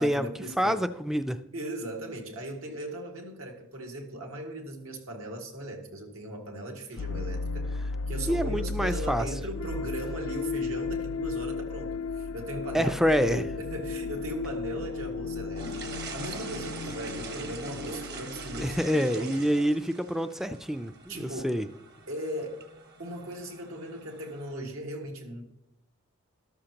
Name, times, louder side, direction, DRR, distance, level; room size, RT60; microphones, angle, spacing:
voice 1, 0.0-0.8 1.5-7.7 8.1-18.8 19.1-19.5 21.1-21.5 22.1-22.6 23.0-25.4, right 1 dB, 85° right, 1 dB, 2.0 m, -38 dB
voice 2, 0.6-1.4 8.3-9.3 12.7-13.4 18.6-21.6, equal, ahead, 9 dB, 0.3 m, -27 dB
sound 1, 7.0-18.8, left 4 dB, 75° left, 0.4 m, -35 dB
sound 2, 15.6-24.5, right 4 dB, 50° right, 1.2 m, -43 dB
13.0 x 13.0 x 2.9 m, 0.87 s
head